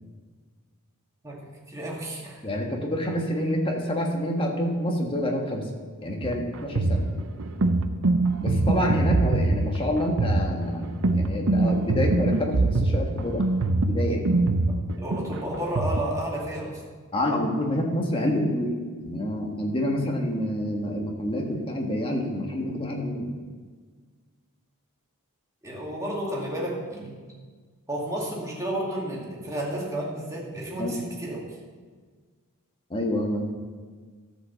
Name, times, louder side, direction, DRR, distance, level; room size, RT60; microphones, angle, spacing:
voice 1, 1.2-2.5 14.9-16.8 25.6-27.2 27.9-31.4, right 1 dB, 15° right, -3 dB, 2.3 m, -32 dB
voice 2, 2.4-5.7 6.0-7.0 8.4-13.4 13.9-14.2 17.1-18.7 19.0-23.3 30.8-30.9 32.9-33.5, equal, 25° left, 1 dB, 1.5 m, -27 dB
sound 1, 6.2-16.0, right 2 dB, 65° right, 0.7 m, -24 dB
13.0 x 5.4 x 7.0 m, 1.5 s
head